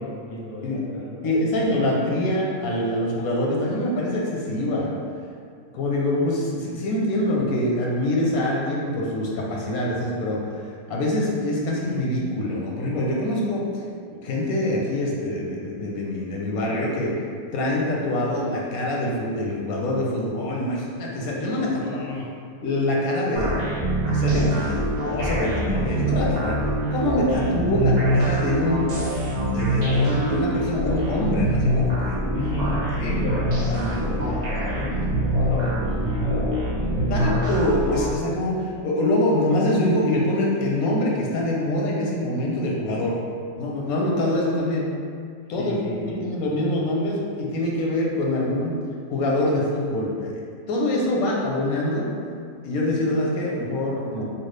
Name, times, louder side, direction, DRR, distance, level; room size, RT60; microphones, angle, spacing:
voice 1, 0.0-1.8 21.7-22.3 24.5-24.8 32.3-37.6 45.6-46.2, left 1 dB, 55° left, -4 dB, 0.7 m, -32 dB
voice 2, 1.2-4.9 5.7-10.4 10.9-13.6 14.1-17.1 17.5-22.0 22.6-23.7 24.1-24.8 25.0-26.6 26.9-28.9 29.5-32.3 33.0-33.2 37.1-43.2 43.6-44.9 45.5-45.8 46.1-48.8 49.1-50.3 50.7-52.1 52.6-54.2, left 1 dB, 85° left, -3 dB, 1.1 m, -24 dB
sound 1, 23.4-38.1, right 1 dB, 80° right, 0.3 m, -24 dB
3.1 x 2.3 x 3.2 m, 2.1 s
omnidirectional pair, 1.5 m